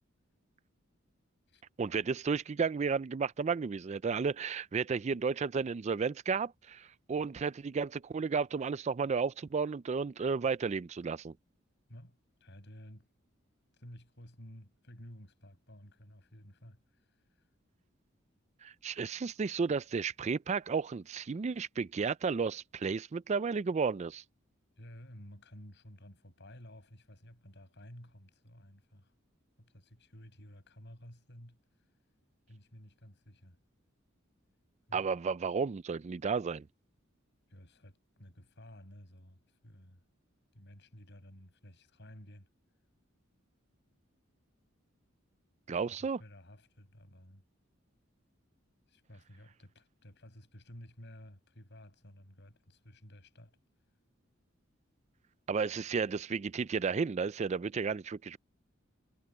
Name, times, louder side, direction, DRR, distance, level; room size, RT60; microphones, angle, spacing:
voice 1, 1.8-11.3 18.6-24.2 34.9-36.6 45.7-46.2 55.5-58.4, right 5 dB, 35° right, 0.4 m, -33 dB
voice 2, 11.9-13.1 13.8-17.2 24.8-29.1 29.6-31.6 32.5-33.6 34.9-35.1 37.5-40.0 40.5-42.5 45.7-47.4 48.9-53.6, equal, 60° left, 7.8 m, -53 dB
head